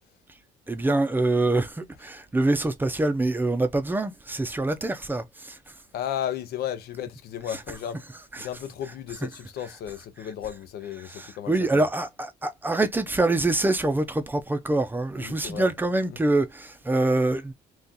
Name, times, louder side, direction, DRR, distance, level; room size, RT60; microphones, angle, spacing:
voice 1, 0.7-5.6 11.2-17.5, right 2 dB, 10° right, 0.6 m, -25 dB
voice 2, 5.9-8.0 8.4-11.9 15.2-15.7 16.1-16.2, left 10 dB, 65° left, 0.7 m, -34 dB
2.8 x 2.5 x 3.7 m
cardioid pair, 110°, 17 cm